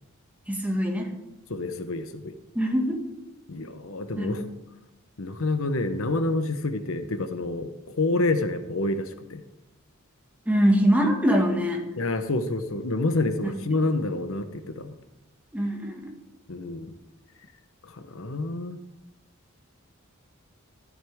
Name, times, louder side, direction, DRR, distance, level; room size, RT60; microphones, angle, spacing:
voice 1, 0.5-1.1 2.6-3.0 4.1-4.4 10.5-11.8 13.4-13.5 15.5-16.1, equal, 5° right, 0 dB, 1.9 m, -23 dB
voice 2, 1.5-2.4 3.5-4.5 5.2-9.4 12.0-14.9 16.5-17.0 17.9-18.8, left 2 dB, 70° left, 9 dB, 1.0 m, -28 dB
14.0 x 11.0 x 3.6 m, 0.90 s
head